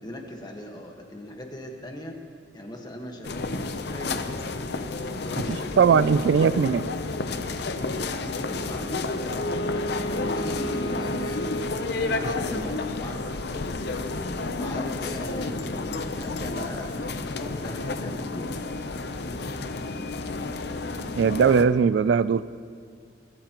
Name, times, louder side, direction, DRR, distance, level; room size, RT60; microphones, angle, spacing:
voice 1, 0.0-2.2 2.5-4.2 5.2-6.6 8.2-9.7 10.0-18.7, equal, 20° left, 2 dB, 1.5 m, -39 dB
sound 1, 3.2-21.6, left 3 dB, 60° left, 0.7 m, -31 dB
voice 2, 5.4-6.8 21.2-22.5, right 6 dB, 65° right, 16 dB, 0.3 m, -20 dB
Wind instrument woodwind instrument, 9.3-12.2, equal, 75° left, 1.2 m, -33 dB
23.5 x 13.5 x 3.0 m, 2.1 s
head